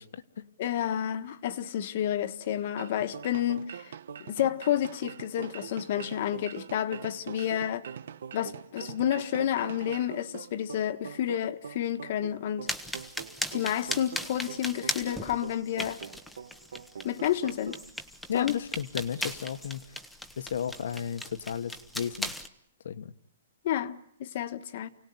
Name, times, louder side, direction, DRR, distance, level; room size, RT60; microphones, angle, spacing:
voice 1, 0.0-0.5 18.3-19.9 20.4-22.3 22.8-23.1, left 8 dB, 65° left, 1.4 m, -34 dB
voice 2, 0.6-3.9 4.2-7.9 8.3-12.7 13.5-16.0 17.0-17.8 18.3-18.6 23.6-24.9, left 11 dB, 40° left, 1.5 m, -30 dB
sound 1, 2.8-10.1, right 9 dB, 65° right, 1.3 m, -46 dB
sound 2, 2.8-17.9, right 7 dB, 80° right, 1.3 m, -45 dB
sound 3, 12.7-22.5, equal, ahead, 1.1 m, -38 dB
29.0 x 19.0 x 9.6 m
hypercardioid pair, 175°, 0 cm